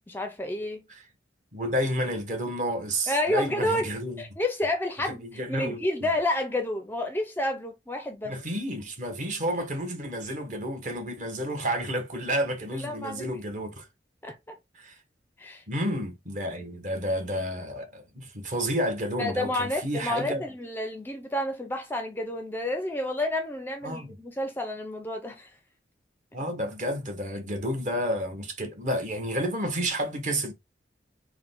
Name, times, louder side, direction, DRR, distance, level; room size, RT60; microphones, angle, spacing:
voice 1, 0.1-0.9 3.1-3.9 4.2-8.4 12.8-13.4 14.2-14.6 15.4-15.6 19.2-25.5, left 1 dB, 10° left, 0.5 m, -30 dB
voice 2, 1.5-4.2 5.2-5.8 8.2-13.8 14.7-15.0 15.7-20.4 23.8-24.2 26.3-30.5, equal, 40° right, 1.1 m, -30 dB
4.5 x 2.2 x 3.7 m
head